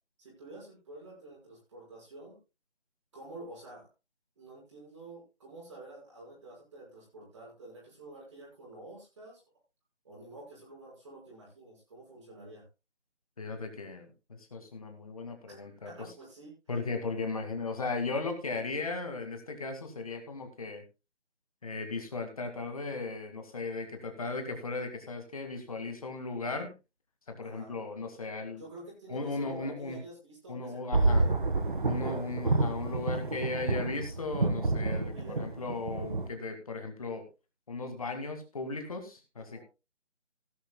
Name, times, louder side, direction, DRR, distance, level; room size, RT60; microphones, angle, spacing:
voice 1, 0.2-2.4 3.1-3.9 4.4-9.4 10.0-12.6 15.5-16.5 27.4-27.7 28.6-31.4 34.9-35.6 39.4-39.6, right 2 dB, 25° right, -4 dB, 5.9 m, -49 dB
voice 2, 13.4-16.1 16.7-20.8 21.6-26.7 27.3-28.6 29.1-30.0 30.5-31.3 31.8-37.3 37.7-39.6, left 3 dB, 30° left, 6 dB, 2.1 m, -36 dB
sound 1, 30.9-36.3, right 3 dB, 45° right, 1.6 m, -29 dB
17.0 x 11.5 x 2.2 m, 0.27 s
figure-of-eight pair, 165°, 36 cm